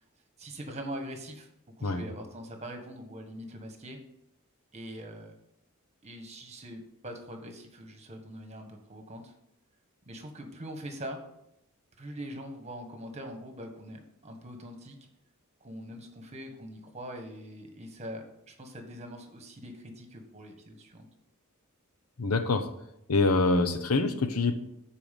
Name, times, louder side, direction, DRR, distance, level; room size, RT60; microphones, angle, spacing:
voice 1, 0.4-1.5 1.8-4.0 4.7-5.3 6.0-9.3 10.1-11.2 12.0-15.0 15.6-21.1, equal, 30° right, 4 dB, 1.5 m, -42 dB
voice 2, 22.2-22.7 23.1-24.6, left 3 dB, 85° left, 9 dB, 0.9 m, -25 dB
13.0 x 4.6 x 5.4 m, 0.80 s
head